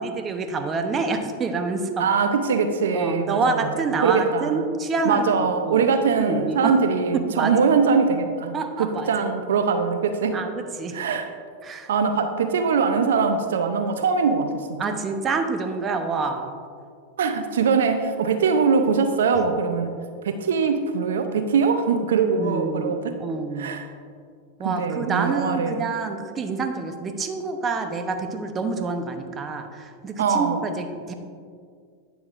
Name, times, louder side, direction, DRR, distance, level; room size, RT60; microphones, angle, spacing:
voice 1, 0.0-2.1 2.9-5.3 5.6-5.8 6.2-6.7 7.3-7.5 8.5-9.1 10.3-10.9 11.6-11.9 14.8-16.6 22.3-22.9 23.2-23.8 24.6-31.1, right 4 dB, 25° right, 6 dB, 0.7 m, -27 dB
voice 2, 2.0-4.6 5.0-10.4 10.9-11.3 11.9-15.0 17.2-20.0 20.2-23.2 23.6-23.9 24.6-25.8 30.2-30.7, right 5 dB, 80° right, 7 dB, 0.5 m, -22 dB
9.5 x 7.0 x 2.5 m, 2.1 s
hypercardioid pair, 105°, 0 cm